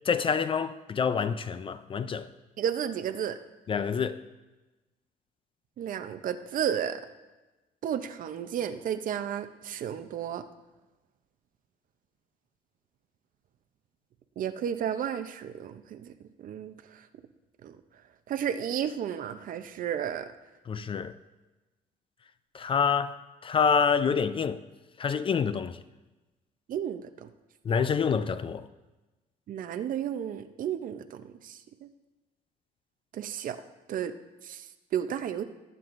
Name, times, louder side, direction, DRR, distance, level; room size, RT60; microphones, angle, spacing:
voice 1, 0.1-2.3 3.7-4.2 20.7-21.1 22.5-23.2 23.4-24.6 25.0-25.8 27.7-28.7, left 6 dB, 30° left, 0.4 m, -27 dB
voice 2, 2.6-3.4 5.8-7.0 7.8-10.4 14.4-16.1 16.4-17.0 17.6-17.8 18.3-20.3 26.7-27.3 29.5-31.9 33.1-33.6 33.9-34.1 34.4-34.6 34.9-35.4, right 9 dB, 55° right, 0.6 m, -32 dB
18.5 x 7.7 x 2.6 m
cardioid pair, 110°, 17 cm